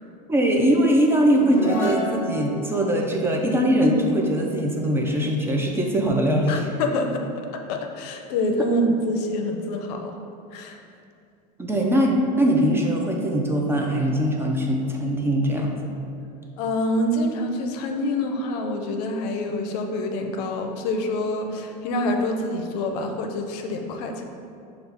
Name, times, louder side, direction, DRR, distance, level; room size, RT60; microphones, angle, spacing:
voice 1, 0.3-6.6 11.6-15.7, equal, 10° right, 0 dB, 0.4 m, -21 dB
sound 1, 1.3-4.9, left 1 dB, 10° left, 0.8 m, -32 dB
voice 2, 6.5-10.2 10.5-10.8 16.6-24.2, left 1 dB, 70° left, 4 dB, 0.5 m, -26 dB
5.5 x 2.4 x 3.5 m, 2.5 s
supercardioid pair, 115°, 21 cm